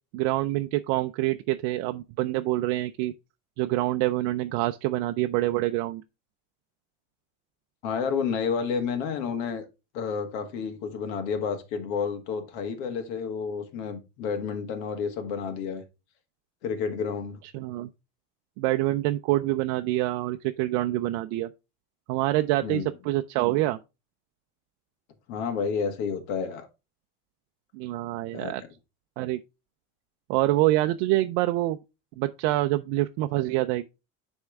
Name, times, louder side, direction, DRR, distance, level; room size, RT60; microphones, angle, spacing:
voice 1, 0.1-3.1 3.6-6.0 17.5-17.9 18.6-21.5 22.1-23.8 27.7-28.6 29.2-29.4 30.3-31.8 32.2-33.9, right 16 dB, 70° right, 0.5 m, -26 dB
voice 2, 7.8-9.6 9.9-15.8 16.6-17.4 22.6-22.9 25.3-26.7 28.3-28.5, left 6 dB, 75° left, 1.6 m, -30 dB
9.7 x 3.6 x 3.5 m
cardioid pair, 170°, 35 cm